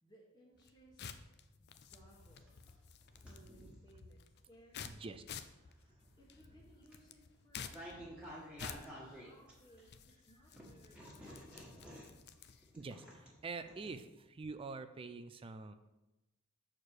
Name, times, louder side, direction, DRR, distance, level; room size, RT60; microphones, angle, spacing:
voice 1, 0.0-1.0 1.6-2.7 3.3-5.1 6.2-12.2, right 1 dB, 20° left, -5 dB, 1.3 m, -64 dB
sound 1, 0.5-12.8, left 7 dB, 50° left, 0.5 m, -52 dB
sound 2, 1.8-3.9 4.5-10.1 10.5-13.9, equal, 5° right, 1.8 m, -53 dB
voice 2, 4.8-5.2 12.8-15.7, right 4 dB, 25° right, 11 dB, 0.4 m, -46 dB
6.6 x 4.5 x 6.6 m, 1.0 s
head